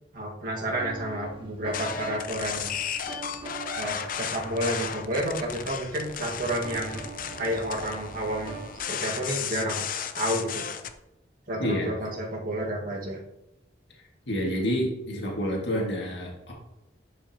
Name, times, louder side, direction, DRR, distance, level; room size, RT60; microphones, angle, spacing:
voice 1, 0.1-2.7 3.8-7.0 7.4-8.6 8.9-9.8 10.2-10.7 11.5-13.2, right 1 dB, 50° right, -1 dB, 1.7 m, -30 dB
sound 1, 0.7-8.8, right 3 dB, 30° right, 1.3 m, -44 dB
sound 2, 1.7-10.9, left 8 dB, 50° left, 0.5 m, -34 dB
voice 2, 11.6-11.9 14.3-16.5, equal, 70° left, -2 dB, 2.0 m, -28 dB
10.5 x 5.5 x 2.9 m, 0.91 s
head